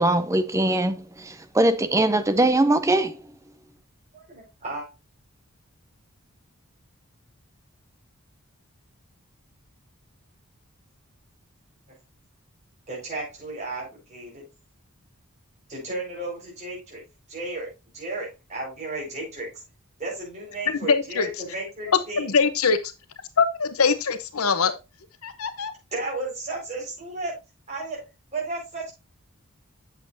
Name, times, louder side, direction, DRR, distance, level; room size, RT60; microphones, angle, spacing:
voice 1, 0.0-3.2, right 1 dB, 15° right, 0.5 m, -21 dB
voice 2, 4.1-4.9 11.9-12.0 12.9-14.4 15.7-17.0 17.3-17.7 17.9-19.6 20.0-22.4 25.9-27.3 27.7-28.0 28.3-28.9, right 2 dB, 30° right, 5.1 m, -33 dB
voice 3, 20.9-21.3 22.2-22.8 23.4-24.7 25.2-25.7, left 5 dB, 80° left, 0.9 m, -22 dB
8.5 x 7.4 x 2.7 m
head